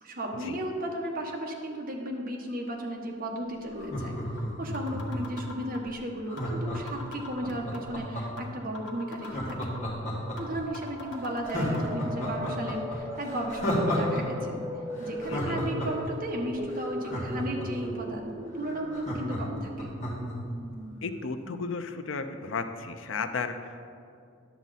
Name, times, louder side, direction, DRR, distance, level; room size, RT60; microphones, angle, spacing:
voice 1, 0.0-4.2 4.6-9.6 10.4-14.6 15.0-19.9, right 1 dB, 50° right, 0 dB, 1.2 m, -35 dB
Laughter, 3.7-5.4 6.3-8.5 9.2-10.6 11.0-11.1 11.4-14.2 14.5-14.6 15.0-17.9 18.3-18.4 18.6-20.3 20.7-20.8, equal, 40° left, 2.0 m, -32 dB
sound 1, 3.9-4.0 4.4-4.5 4.7-5.9 6.4-6.5 6.7-7.9 8.4-8.5 8.7-9.9 10.4-10.5 10.7-11.8, left 3 dB, 65° left, 1.2 m, -43 dB
sound 2, 10.4-22.1, equal, 15° right, 0.5 m, -39 dB
voice 2, 15.3-15.6 21.0-23.8, left 4 dB, 85° left, 8 dB, 0.6 m, -34 dB
10.5 x 7.3 x 4.1 m, 2.3 s
head